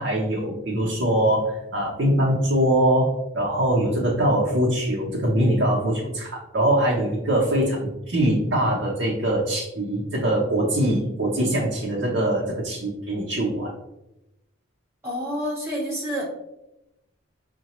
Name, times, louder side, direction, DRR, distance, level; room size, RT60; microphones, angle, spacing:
voice 1, 0.0-6.3 6.5-13.7, right 1 dB, 60° right, -4 dB, 0.7 m, -22 dB
voice 2, 15.0-16.3, equal, 10° right, -5 dB, 1.3 m, -28 dB
5.6 x 2.2 x 2.9 m, 0.90 s
head